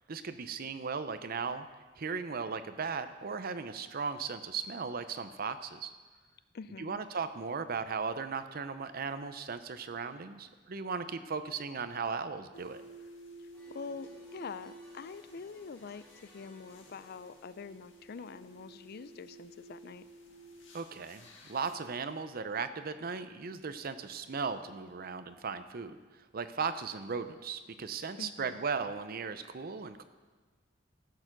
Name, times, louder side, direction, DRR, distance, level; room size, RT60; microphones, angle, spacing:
voice 1, 0.1-1.7 2.0-5.9 6.8-12.8 20.7-30.0, right 5 dB, 50° right, 11 dB, 0.6 m, -37 dB
voice 2, 6.5-7.0 13.7-20.0 28.2-28.6, left 5 dB, 55° left, 14 dB, 0.4 m, -45 dB
sound 1, 12.5-21.8, right 1 dB, 70° left, 1.8 m, -53 dB
sound 2, 13.5-18.4, equal, 10° left, 2.8 m, -62 dB
15.0 x 6.8 x 6.0 m, 1.4 s
head